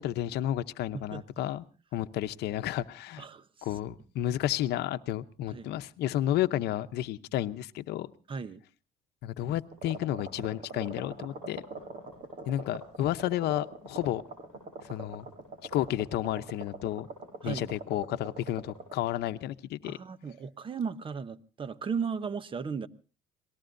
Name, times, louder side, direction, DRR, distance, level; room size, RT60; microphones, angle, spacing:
voice 1, 0.0-1.6 1.9-3.3 3.6-8.1 9.2-11.6 12.5-14.2 14.8-15.3 15.6-17.1 17.4-20.0, left 13 dB, 75° left, 0.8 m, -31 dB
voice 2, 8.3-8.6 17.4-17.8 19.8-22.9, right 6 dB, 30° right, 0.9 m, -35 dB
sound 1, 9.7-18.9, right 3 dB, 55° right, 7.1 m, -43 dB
27.0 x 19.0 x 2.6 m
cardioid pair, 110°, 17 cm